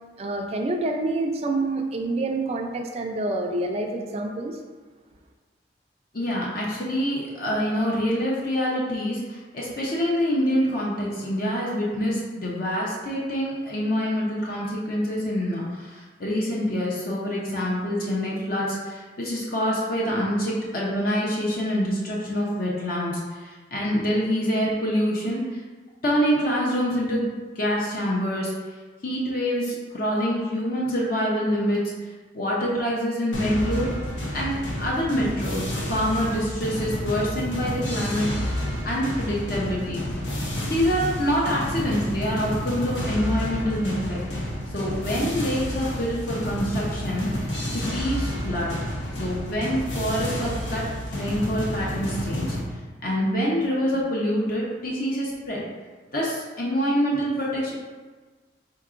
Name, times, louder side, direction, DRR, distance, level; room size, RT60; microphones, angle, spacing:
voice 1, 0.2-4.6, right 2 dB, 35° right, 3 dB, 0.4 m, -27 dB
voice 2, 6.1-25.6 26.0-27.3 27.6-28.5 29.0-31.8 32.3-33.9 34.3-38.3 38.8-40.2 40.6-44.5 44.7-47.3 47.7-48.7 49.2-52.6 53.0-55.6 56.1-57.7, equal, 50° left, -5 dB, 0.7 m, -26 dB
sound 1, 33.3-52.6, equal, 75° left, 0.9 m, -30 dB
4.5 x 3.6 x 2.5 m, 1.4 s
head